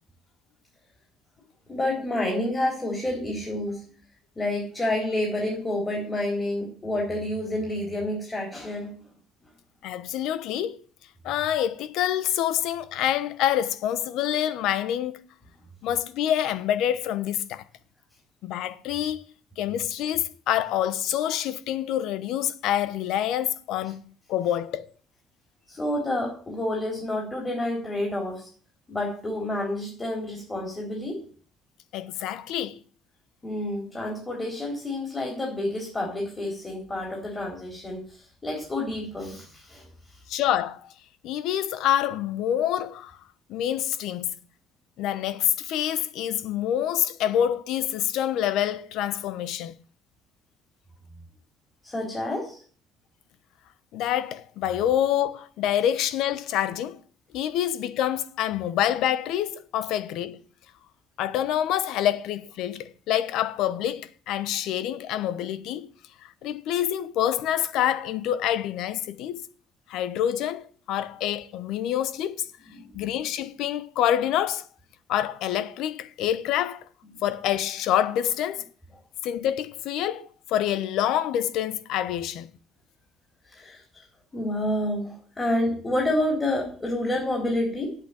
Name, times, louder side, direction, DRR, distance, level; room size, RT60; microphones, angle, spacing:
voice 1, 1.7-3.8 4.4-9.0 25.7-28.5 28.9-31.2 33.4-40.2 51.8-52.6 72.8-73.0 83.5-84.0 84.3-88.0, left 1 dB, 15° left, 3.7 m, -29 dB
voice 2, 9.8-10.8 11.2-15.2 15.8-17.6 18.4-19.2 19.6-24.0 24.3-24.9 31.9-32.8 40.3-40.8 41.2-43.2 43.5-44.4 45.0-49.8 53.9-57.0 57.3-60.4 61.2-65.9 66.2-69.4 69.9-72.5 72.9-74.7 75.1-76.9 77.2-78.7 79.2-82.5, left 11 dB, 70° left, 1.0 m, -27 dB
8.6 x 8.3 x 9.1 m
cardioid pair, 150°, 0 cm